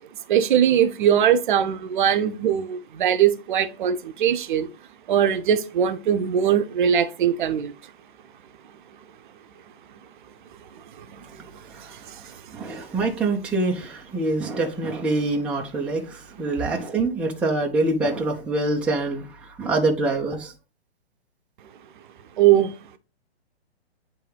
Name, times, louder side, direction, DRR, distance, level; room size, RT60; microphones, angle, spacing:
voice 1, 0.3-4.7 5.1-7.7 11.0-11.3 11.8-12.7 22.4-23.0, right 9 dB, 50° right, 0.8 m, -21 dB
voice 2, 12.5-20.5, right 2 dB, 5° right, 0.6 m, -25 dB
9.1 x 3.5 x 3.3 m
hypercardioid pair, 130°, 32 cm